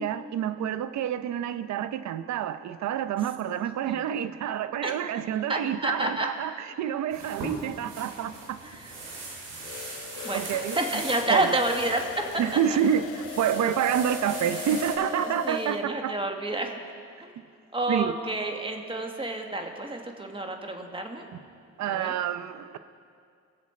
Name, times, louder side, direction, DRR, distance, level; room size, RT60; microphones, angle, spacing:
voice 1, 0.0-8.6 10.3-10.8 11.3-11.6 12.4-16.1 17.9-18.1 21.3-21.4 21.8-22.8, right 9 dB, 65° right, 12 dB, 0.6 m, -28 dB
voice 2, 5.5-6.3 8.6-8.9 10.2-12.0 15.2-16.8 17.2-17.3 17.7-21.3 21.8-22.1, right 1 dB, 15° right, 3 dB, 1.5 m, -29 dB
sound 1, 7.1-14.9, right 2 dB, 90° right, 3.2 m, -40 dB
sound 2, 9.6-15.8, left 11 dB, 90° left, 0.6 m, -39 dB
21.5 x 7.3 x 4.3 m, 2.2 s
cardioid pair, 90°, 30 cm